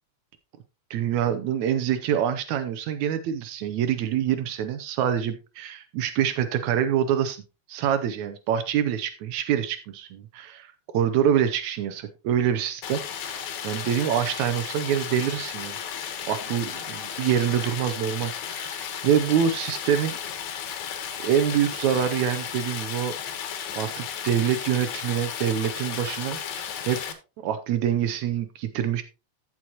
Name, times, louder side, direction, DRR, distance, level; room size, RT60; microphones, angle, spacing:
voice 1, 0.9-7.4 7.7-15.8 16.3-20.2 21.2-23.2 23.8-27.1 27.4-29.0, right 9 dB, 80° right, 9 dB, 2.1 m, -26 dB
Stream, 12.8-27.1, left 8 dB, 80° left, 2.5 m, -34 dB
14.5 x 6.2 x 2.9 m, 0.30 s
omnidirectional pair, 3.3 m